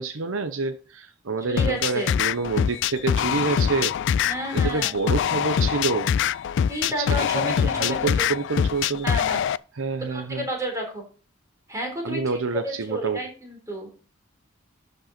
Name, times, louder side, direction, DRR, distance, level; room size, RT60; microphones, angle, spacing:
voice 1, 0.0-3.9 4.5-6.1 7.0-9.1 9.8-10.5 12.0-13.2, right 4 dB, 70° right, 10 dB, 0.7 m, -28 dB
voice 2, 1.5-2.2 4.3-4.9 6.7-8.3 9.0-9.4 10.1-11.0 11.7-12.2 12.6-13.9, right 1 dB, 15° right, 1 dB, 3.8 m, -31 dB
sound 1, 1.6-9.6, left 8 dB, 60° left, 0.3 m, -24 dB
12.0 x 5.4 x 4.2 m, 0.39 s
head